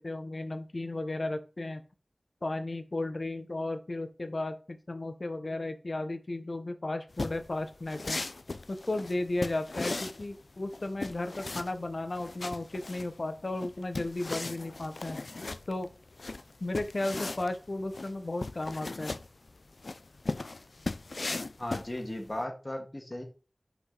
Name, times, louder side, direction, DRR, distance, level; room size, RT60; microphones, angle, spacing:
voice 1, 0.0-1.8 2.4-8.2 8.7-15.2 15.7-15.9 16.6-19.2, left 2 dB, 65° left, 9 dB, 0.9 m, -34 dB
sound 1, 7.1-22.4, left 3 dB, 85° left, 0.4 m, -38 dB
voice 2, 21.6-23.2, left 1 dB, 35° left, 3 dB, 1.9 m, -36 dB
6.0 x 5.1 x 3.9 m, 0.33 s
wide cardioid pair, 45°, 0 cm